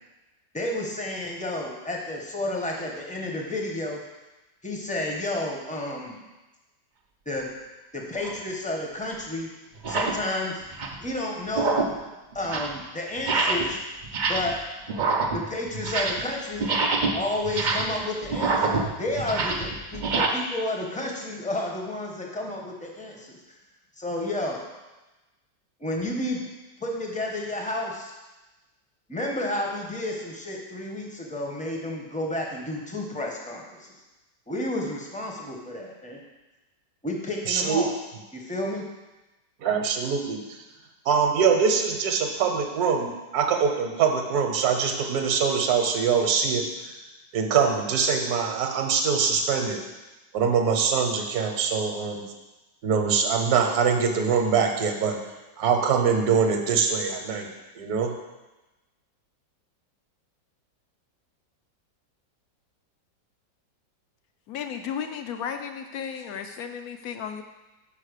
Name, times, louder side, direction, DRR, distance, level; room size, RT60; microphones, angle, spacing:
voice 1, 0.5-4.0 4.6-6.2 7.3-7.5 7.9-9.5 9.9-10.6 11.0-11.8 12.3-13.8 14.3-14.6 15.3-16.7 17.1-23.4 24.0-24.6 25.8-26.4 26.8-28.2 29.1-33.9 34.5-36.2 37.0-37.9 38.3-38.8, left 1 dB, 5° left, 0 dB, 0.6 m, -31 dB
sound 1, 8.2-8.4 9.1-9.2 9.7-10.2 10.6-11.1 11.5-12.0 12.3-12.8 13.2-13.7 14.0-14.6 14.9-16.3 16.6-20.3, right 3 dB, 90° right, 0.4 m, -26 dB
voice 2, 37.5-37.8 39.6-40.6 41.0-46.6 47.3-49.8 50.3-52.2 52.8-55.2 55.6-57.5 57.8-58.1, right 6 dB, 65° right, 3 dB, 1.2 m, -23 dB
voice 3, 64.5-67.4, left 7 dB, 70° left, 7 dB, 1.0 m, -34 dB
5.7 x 5.4 x 6.6 m, 1.1 s
omnidirectional pair, 1.9 m